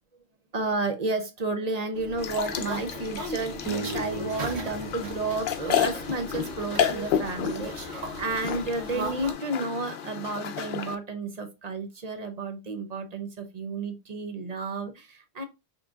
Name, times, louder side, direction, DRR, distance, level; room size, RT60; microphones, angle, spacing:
voice 1, 0.5-15.4, right 3 dB, 40° right, 0.8 m, -32 dB
sound 1, 1.9-9.3, right 1 dB, 85° right, 1.3 m, -38 dB
sound 2, 2.2-10.9, left 8 dB, 60° left, 0.7 m, -32 dB
sound 3, 3.7-6.9, right 2 dB, 20° left, 0.9 m, -40 dB
5.7 x 3.1 x 2.4 m
omnidirectional pair, 1.1 m